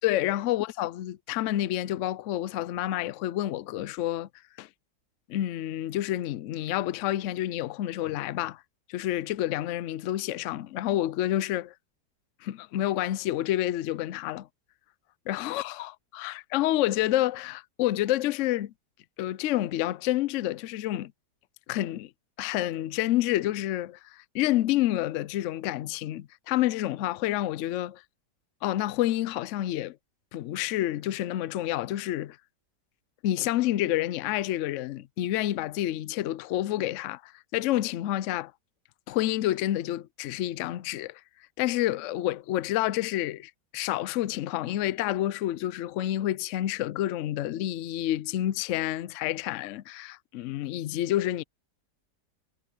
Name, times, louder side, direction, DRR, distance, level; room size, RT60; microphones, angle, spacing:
voice 1, 0.0-4.3 4.6-4.7 5.3-8.6 8.9-11.7 12.4-14.5 15.3-18.7 19.2-21.1 21.7-22.1 22.4-28.0 28.6-30.0 30.3-32.4 33.2-38.5 39.1-41.2 41.6-51.4, left 14 dB, 80° left, 0.6 m, -29 dB
omnidirectional pair, 1.9 m